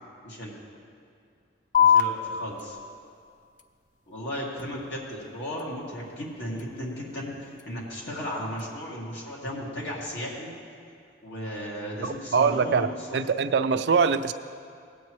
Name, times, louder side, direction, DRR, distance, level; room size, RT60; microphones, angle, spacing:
sound 1, 1.7-8.7, left 8 dB, 40° left, 0.4 m, -30 dB
voice 1, 1.8-2.8 4.1-10.5 11.2-12.9, equal, 65° left, -5 dB, 2.2 m, -35 dB
voice 2, 12.0-12.9 13.1-14.3, right 5 dB, 65° right, 9 dB, 0.4 m, -23 dB
17.5 x 8.4 x 3.1 m, 2.3 s
head